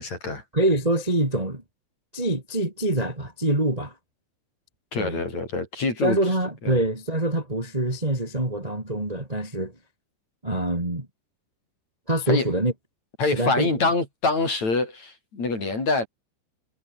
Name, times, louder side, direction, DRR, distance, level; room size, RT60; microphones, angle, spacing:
voice 1, 0.0-0.4 4.9-6.2 6.6-6.8 12.3-12.5 13.2-16.1, left 3 dB, 35° left, 7.2 m, -25 dB
voice 2, 0.5-1.6 2.1-3.9 4.9-5.2 6.0-9.7 10.4-11.1 12.1-12.7 13.3-13.7, right 1 dB, 10° right, 3.0 m, -25 dB
omnidirectional pair, 5.5 m